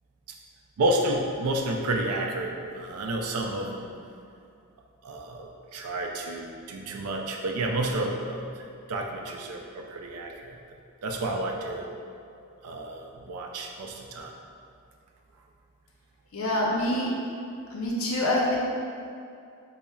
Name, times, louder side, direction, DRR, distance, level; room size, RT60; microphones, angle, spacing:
voice 1, 0.8-3.9 5.0-8.5 8.9-10.6 11.0-11.9 12.6-14.3, right 1 dB, 90° right, 2 dB, 0.4 m, -30 dB
voice 2, 16.3-17.1 17.7-18.6, left 1 dB, 70° left, -2 dB, 0.6 m, -26 dB
5.4 x 2.0 x 2.3 m, 2.5 s
head